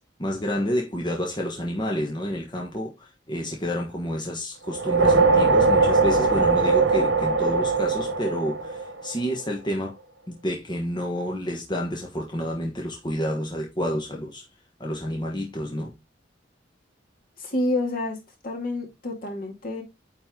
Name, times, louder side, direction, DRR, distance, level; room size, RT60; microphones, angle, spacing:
voice 1, 0.2-10.0 10.3-14.5 14.8-16.0, equal, 25° left, 1.3 m, -29 dB
sound 1, 4.7-9.3, right 3 dB, 85° right, 1.4 m, -20 dB
voice 2, 17.4-18.2 18.4-19.8, left 2 dB, 50° left, 2.4 m, -28 dB
9.2 x 4.1 x 3.8 m
head